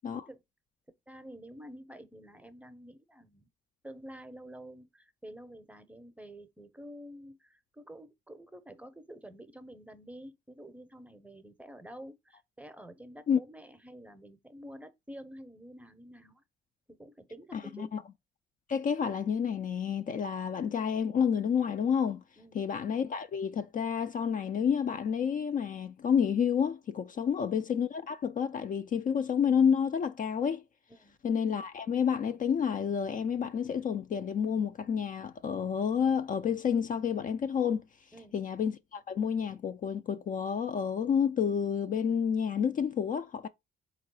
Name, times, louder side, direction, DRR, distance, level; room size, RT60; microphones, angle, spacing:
voice 1, 1.1-3.5 3.8-16.4 16.9-17.9 22.4-22.6 27.2-27.3 30.9-31.2 38.1-38.4, right 1 dB, 5° right, 0.6 m, -49 dB
voice 2, 17.5-18.0 18.7-22.2 22.5-30.6 31.2-37.8 38.3-43.5, left 7 dB, 45° left, 0.4 m, -29 dB
3.8 x 2.9 x 4.6 m
cardioid pair, 90°, 20 cm